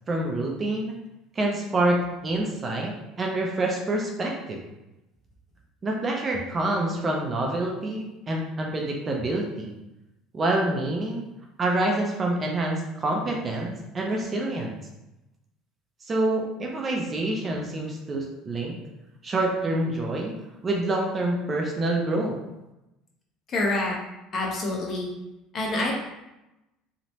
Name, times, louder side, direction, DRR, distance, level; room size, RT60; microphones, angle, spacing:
voice 1, 0.1-0.9 1.4-4.6 5.8-9.7 10.3-11.2 11.6-14.8 16.0-18.8 19.2-20.3 20.6-22.4, right 2 dB, 25° right, 0 dB, 0.4 m, -27 dB
voice 2, 23.5-23.9 24.3-25.1 25.5-25.9, left 2 dB, 35° left, -2 dB, 0.7 m, -26 dB
2.9 x 2.1 x 2.7 m, 0.96 s
cardioid pair, 130°, 0 cm